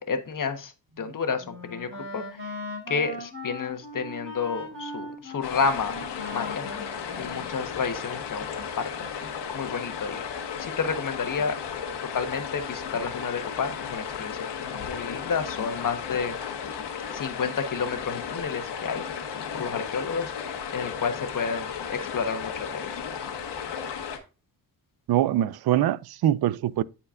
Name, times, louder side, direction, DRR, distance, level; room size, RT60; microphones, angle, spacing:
voice 1, 0.0-2.5 2.9-6.0 6.3-6.6 7.2-8.9 9.2-10.3 10.6-11.6 12.0-16.5 17.1-19.0 19.5-22.9, left 5 dB, 50° left, 1.3 m, -31 dB
Wind instrument woodwind instrument, 0.9-8.1, left 1 dB, 30° right, 3.7 m, -40 dB
sound 1, 5.4-24.2, left 7 dB, 85° left, 1.5 m, -34 dB
voice 2, 25.1-26.8, right 12 dB, 65° right, 0.5 m, -23 dB
13.0 x 4.4 x 2.5 m
cardioid pair, 80°, 40 cm